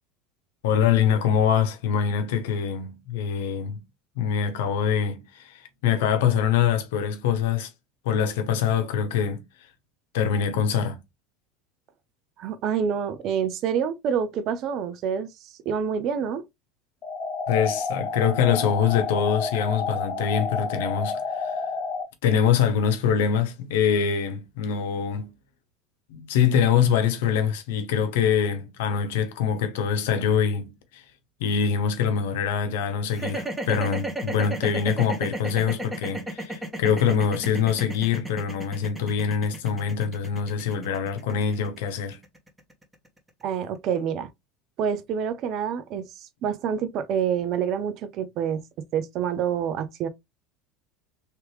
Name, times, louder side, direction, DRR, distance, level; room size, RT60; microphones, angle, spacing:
voice 1, 0.6-3.8 4.2-7.7 8.0-9.4 10.1-11.0 17.5-21.6 22.2-25.3 26.1-31.0 31.4-42.2, left 7 dB, 80° left, 0.9 m, -24 dB
voice 2, 12.4-16.4 43.4-44.3 44.8-48.6 48.9-50.1, right 7 dB, 55° right, 0.6 m, -27 dB
sound 1, 17.0-22.0, left 4 dB, 55° left, 1.2 m, -29 dB
sound 2, 33.1-43.3, right 1 dB, 10° right, 1.3 m, -33 dB
3.3 x 3.1 x 3.1 m
supercardioid pair, 95°, 0 cm